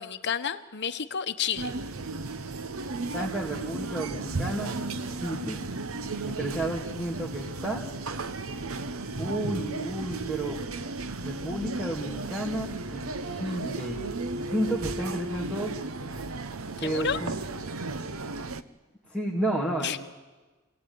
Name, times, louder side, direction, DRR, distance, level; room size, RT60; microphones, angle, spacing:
voice 1, 0.0-1.7 16.8-17.2 19.8-20.0, left 7 dB, 55° left, 9 dB, 1.1 m, -30 dB
sound 1, 1.6-18.6, right 3 dB, 70° right, 1.0 m, -35 dB
voice 2, 3.1-5.6 6.2-7.8 9.2-10.6 11.2-14.0 14.5-15.7 16.8-17.3 19.1-20.0, right 1 dB, 5° right, -4 dB, 2.7 m, -32 dB
25.5 x 17.5 x 9.7 m, 1.2 s
head